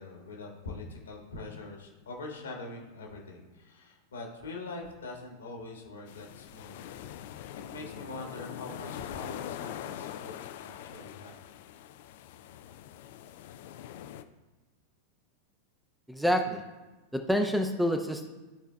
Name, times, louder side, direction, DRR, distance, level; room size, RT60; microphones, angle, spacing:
voice 1, 0.0-6.9 7.7-11.4, left 2 dB, 70° left, 0 dB, 1.6 m, -43 dB
sound 1, 6.1-14.2, left 11 dB, 55° left, 0.3 m, -43 dB
voice 2, 16.1-16.6 17.1-18.3, equal, ahead, 5 dB, 0.6 m, -27 dB
13.0 x 4.5 x 2.2 m, 1.1 s
figure-of-eight pair, 90°, 0 cm